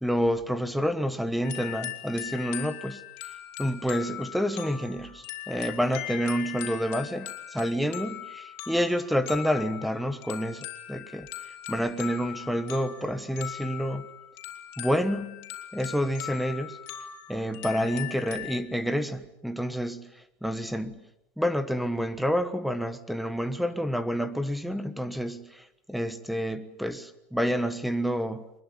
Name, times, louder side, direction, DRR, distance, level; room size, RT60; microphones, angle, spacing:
voice 1, 0.0-3.0 3.6-11.3 11.7-14.1 14.8-16.8 17.3-20.1 20.4-21.0 21.4-28.5, equal, ahead, 1.3 m, -29 dB
sound 1, 1.4-18.6, left 13 dB, 45° left, 3.7 m, -40 dB
24.0 x 21.0 x 9.6 m
supercardioid pair, 165°, 6 cm